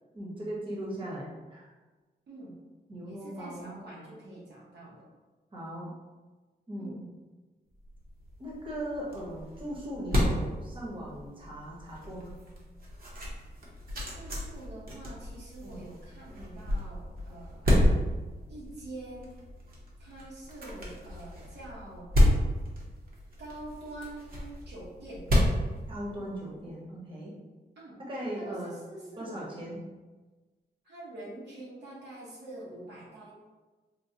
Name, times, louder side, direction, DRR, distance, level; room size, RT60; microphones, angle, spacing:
voice 1, 0.1-1.7 2.9-3.7 5.5-5.9 6.7-7.0 8.4-12.3 15.6-15.8 25.9-27.3 28.1-28.7 29.2-29.8, right 1 dB, 30° right, -5 dB, 0.8 m, -38 dB
voice 2, 2.3-2.6 3.0-5.1 6.8-7.1 14.1-17.7 18.5-19.4 20.0-22.2 23.4-25.3 27.8-28.0 28.3-29.5 30.8-33.3, right 2 dB, 85° right, -6 dB, 1.0 m, -45 dB
sound 1, 7.8-26.6, left 1 dB, 60° right, 0.8 m, -31 dB
4.3 x 2.1 x 2.7 m, 1.3 s
wide cardioid pair, 125°, 17 cm